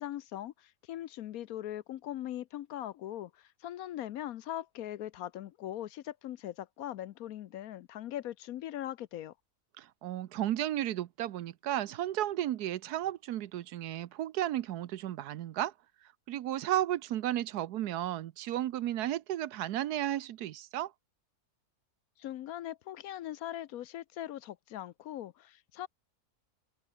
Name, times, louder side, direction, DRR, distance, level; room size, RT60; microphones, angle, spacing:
voice 1, 0.0-9.3 22.2-25.9, left 12 dB, 70° left, 1.0 m, -40 dB
voice 2, 9.8-15.7 16.3-20.9, right 12 dB, 80° right, 1.3 m, -33 dB
omnidirectional pair, 1.7 m